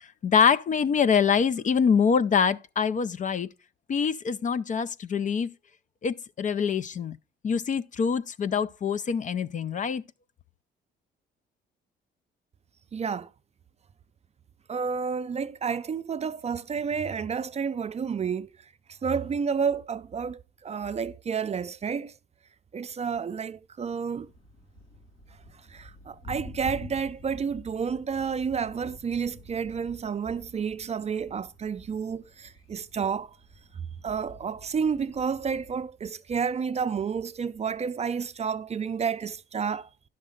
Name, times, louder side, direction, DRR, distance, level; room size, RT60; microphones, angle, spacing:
voice 1, 0.2-3.5 3.9-5.5 6.0-7.2 7.4-10.0, left 6 dB, 40° left, 0.4 m, -25 dB
voice 2, 12.9-13.3 14.7-18.5 18.9-22.1 22.7-24.3 25.7-33.4 33.7-39.9, right 6 dB, 35° right, 0.5 m, -30 dB
Thunder, 24.2-35.8, left 1 dB, 90° left, 2.6 m, -48 dB
10.0 x 6.5 x 3.7 m
cardioid pair, 90°, 20 cm